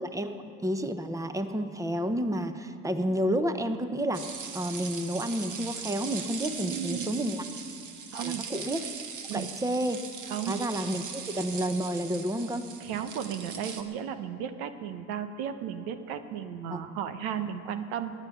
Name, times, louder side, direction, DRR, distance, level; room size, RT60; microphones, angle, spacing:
voice 1, 0.0-4.2 4.5-7.4 8.1-9.0 9.3-10.0 10.5-12.7 16.7-17.0, equal, 10° right, 9 dB, 0.9 m, -30 dB
sound 1, 4.1-13.8, right 6 dB, 55° right, 1.6 m, -40 dB
voice 2, 6.6-7.2 8.1-8.5 9.3-9.5 10.3-10.6 12.8-18.1, right 9 dB, 80° right, 9 dB, 1.0 m, -34 dB
19.0 x 10.5 x 5.9 m, 2.5 s
supercardioid pair, 85°, 37 cm